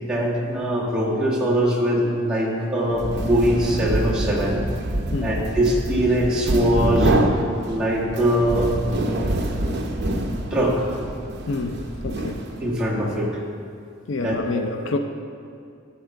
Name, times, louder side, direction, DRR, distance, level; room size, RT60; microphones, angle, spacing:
voice 1, 0.0-4.6 5.2-7.1 7.7-8.7 10.5-10.9 12.6-13.3 14.2-14.6, equal, 5° right, -7 dB, 1.6 m, -22 dB
sound 1, 2.9-12.8, right 1 dB, 50° right, 0.7 m, -26 dB
voice 2, 11.5-12.4 14.1-15.0, left 3 dB, 70° left, 6 dB, 0.5 m, -28 dB
11.5 x 4.2 x 7.0 m, 2.4 s
head